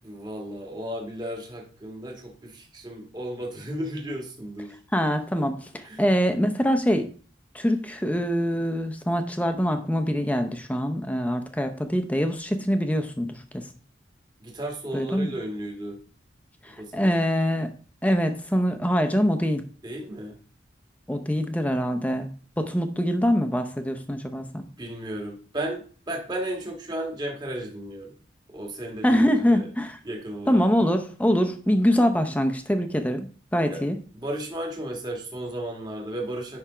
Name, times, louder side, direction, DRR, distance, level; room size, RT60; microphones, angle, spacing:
voice 1, 0.0-4.7 5.8-6.0 14.4-16.0 16.6-17.1 19.8-20.4 24.8-28.1 28.5-29.7 30.0-30.7 33.7-33.8 34.1-36.6, right 1 dB, 25° right, 0 dB, 1.6 m, -34 dB
voice 2, 4.9-7.1 7.5-13.6 14.9-15.3 16.9-17.7 18.0-19.6 21.1-22.3 22.6-24.6 29.0-30.0 30.5-34.0, equal, 10° left, 7 dB, 0.7 m, -24 dB
10.0 x 3.5 x 4.9 m, 0.42 s
head